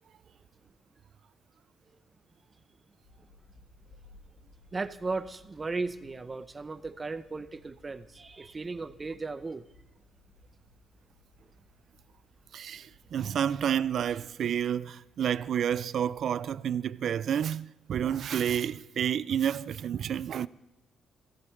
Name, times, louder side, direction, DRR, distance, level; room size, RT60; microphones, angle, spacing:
sound 1, 3.0-14.5, left 2 dB, 90° left, 4.3 m, -60 dB
voice 1, 4.7-9.6, right 3 dB, 25° right, 0.7 m, -36 dB
voice 2, 12.5-20.5, right 9 dB, 65° right, 0.4 m, -30 dB
16.5 x 14.5 x 3.3 m
cardioid pair, 90°, 0 cm